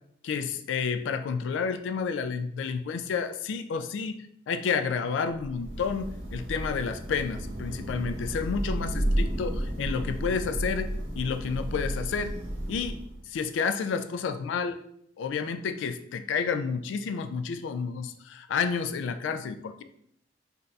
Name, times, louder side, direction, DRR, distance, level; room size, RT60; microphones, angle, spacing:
voice 1, 0.2-10.9 11.1-12.3 12.7-13.0 13.3-14.8 15.2-19.8, left 5 dB, 75° left, 10 dB, 0.3 m, -30 dB
Thunder / Rain, 5.3-13.3, right 1 dB, 85° right, 1.1 m, -32 dB
4.0 x 2.6 x 2.3 m, 0.69 s
head